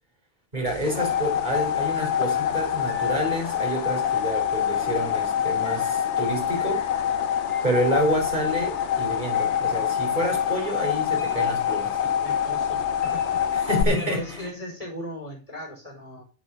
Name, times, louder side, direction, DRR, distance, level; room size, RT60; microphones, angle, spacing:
sound 1, 0.5-14.5, left 4 dB, 85° left, 1.9 m, -44 dB
voice 1, 0.5-6.8 7.6-12.0 13.7-14.2, equal, 40° right, 4.0 m, -28 dB
sound 2, 0.7-13.8, left 9 dB, 70° left, 1.1 m, -25 dB
voice 2, 12.0-13.5 14.0-16.2, equal, 30° left, 5.5 m, -38 dB
8.9 x 8.3 x 5.6 m
omnidirectional pair, 1.2 m